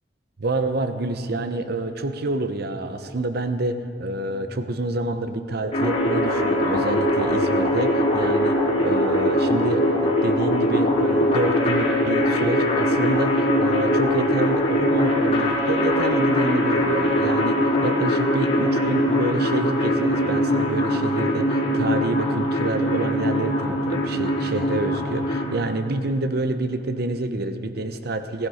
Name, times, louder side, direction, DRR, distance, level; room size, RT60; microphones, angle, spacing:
voice 1, 0.4-28.5, right 2 dB, 55° right, 9 dB, 0.8 m, -28 dB
sound 1, 5.7-25.5, equal, 35° left, 3.5 m, -21 dB
16.0 x 15.5 x 5.0 m, 2.5 s
head